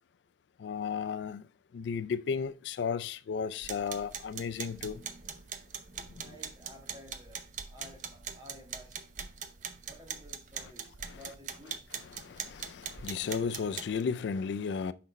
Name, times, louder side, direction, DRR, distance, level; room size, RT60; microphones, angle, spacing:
voice 1, 0.6-1.5 1.7-5.0 6.2-6.3 11.1-11.2 12.1-14.9, left 6 dB, 75° left, 0.3 m, -34 dB
sound 1, 3.6-14.0, right 7 dB, 45° right, 0.6 m, -42 dB
voice 2, 6.2-8.9 9.9-11.8, left 1 dB, 20° right, 1.8 m, -53 dB
5.9 x 5.2 x 4.0 m
head